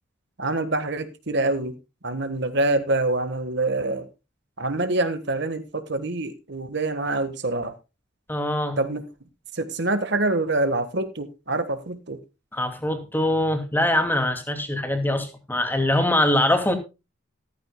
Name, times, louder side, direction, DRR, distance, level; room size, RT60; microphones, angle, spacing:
voice 1, 0.4-1.8 2.0-4.1 4.6-7.7 8.8-9.1 9.5-12.2, right 2 dB, 50° right, 1.5 m, -25 dB
voice 2, 8.3-8.8 12.5-16.7, left 1 dB, 10° left, 2.5 m, -23 dB
15.0 x 14.5 x 2.3 m
head